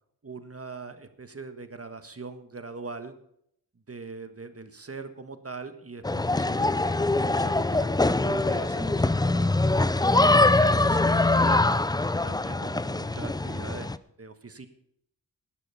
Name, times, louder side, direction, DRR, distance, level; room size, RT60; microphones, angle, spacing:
voice 1, 0.2-3.1 3.9-9.5 10.1-11.8 12.2-14.7, right 4 dB, 40° right, 9 dB, 1.4 m, -41 dB
sound 1, 6.0-14.0, left 2 dB, 10° left, 0.5 m, -23 dB
11.5 x 11.0 x 5.6 m, 0.71 s
cardioid pair, 50°, 37 cm